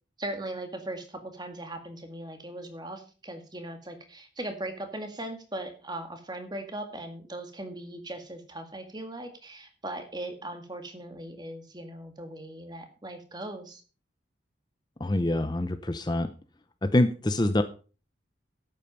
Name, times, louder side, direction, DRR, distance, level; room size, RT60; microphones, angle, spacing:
voice 1, 0.2-13.8, right 1 dB, 20° right, 6 dB, 2.0 m, -39 dB
voice 2, 15.0-16.3 16.8-17.6, left 1 dB, 20° left, 10 dB, 0.6 m, -25 dB
11.5 x 8.7 x 5.3 m, 0.37 s
head